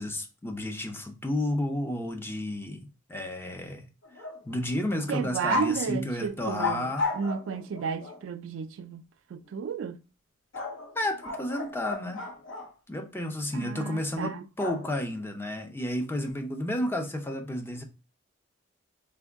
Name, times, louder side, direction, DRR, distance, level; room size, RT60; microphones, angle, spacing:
voice 1, 0.0-3.9 4.4-7.1 10.9-12.2 12.9-17.8, left 1 dB, 10° left, 0.5 m, -32 dB
sound 1, 4.0-4.6 4.9-5.1 5.5-5.8 6.6-8.2 10.5-12.7 14.6-15.2, left 4 dB, 70° left, 0.9 m, -34 dB
voice 2, 5.1-9.0 9.3-10.0 13.5-14.4, right 6 dB, 70° right, 0.3 m, -33 dB
3.4 x 2.2 x 3.4 m
head